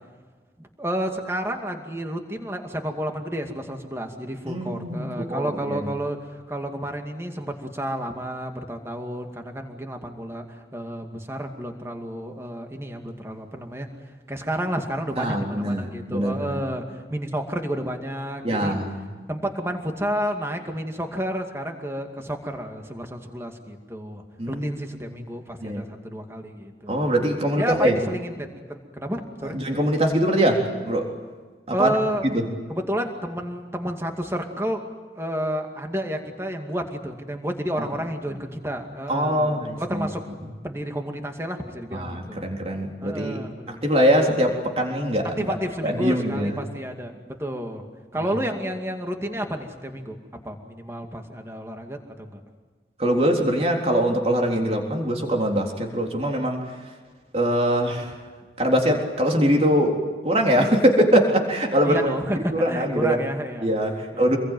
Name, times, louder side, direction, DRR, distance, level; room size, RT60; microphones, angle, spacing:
voice 1, 0.6-13.9 14.3-18.8 19.3-26.9 27.6-29.6 31.7-32.3 32.7-34.8 35.2-40.2 40.6-42.4 43.0-43.8 45.2-47.8 48.1-50.2 50.4-52.4 61.8-63.7 64.1-64.2, equal, 15° right, 4 dB, 2.3 m, -31 dB
voice 2, 4.5-5.9 15.2-16.6 18.4-19.0 24.4-25.1 25.6-25.8 26.9-28.1 29.4-31.2 31.7-32.0 32.2-32.5 37.8-37.9 38.3-38.4 39.1-40.1 41.9-45.5 45.8-46.6 53.0-56.7 57.3-58.2 58.6-62.1 62.5-63.2 63.6-64.4, equal, 35° right, 1 dB, 3.7 m, -23 dB
27.0 x 22.0 x 9.4 m, 1.5 s
head